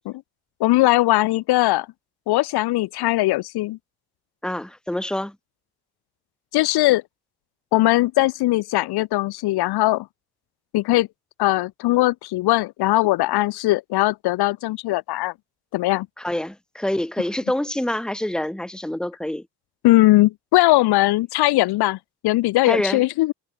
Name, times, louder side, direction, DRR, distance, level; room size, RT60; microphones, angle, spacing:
voice 1, 0.6-1.9 2.3-3.8 6.5-7.0 7.7-10.1 10.7-11.1 11.4-15.3 15.7-16.1 19.8-22.0 22.2-23.3, left 18 dB, 85° left, 1.3 m, -19 dB
voice 2, 4.4-5.3 16.2-19.4 22.6-23.0, left 1 dB, ahead, 1.5 m, -26 dB
cardioid pair, 115°, 38 cm